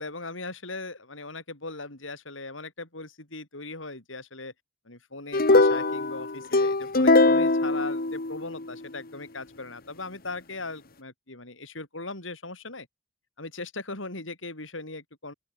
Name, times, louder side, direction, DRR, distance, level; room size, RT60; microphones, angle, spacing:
voice 1, 0.0-4.5 4.8-12.9 13.4-15.3, left 3 dB, 80° left, 6.3 m, -39 dB
sound 1, 5.3-8.7, left 2 dB, 50° left, 1.7 m, -21 dB
open air
head